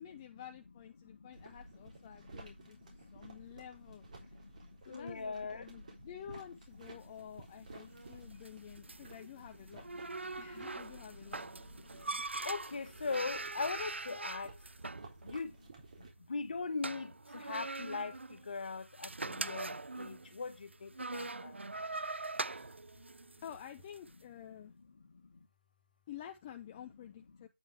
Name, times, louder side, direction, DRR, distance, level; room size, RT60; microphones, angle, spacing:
voice 1, 0.0-4.0 4.8-9.9 10.4-11.5 23.4-24.7 26.1-27.5, left 10 dB, 15° left, 0.5 m, -50 dB
voice 2, 1.0-1.6 2.0-3.6 4.2-6.1 6.9-7.0 7.7-9.1 9.5-9.6 9.9-10.5 11.2-14.5 15.2-15.7 16.0-21.6 24.6-25.5 27.4-27.5, left 4 dB, 45° left, 1.6 m, -43 dB
sound 1, 1.3-16.1, right 2 dB, 40° right, 3.7 m, -55 dB
sound 2, 6.9-24.1, right 3 dB, 75° right, 0.6 m, -43 dB
9.0 x 7.2 x 3.4 m
figure-of-eight pair, 160°, 6 cm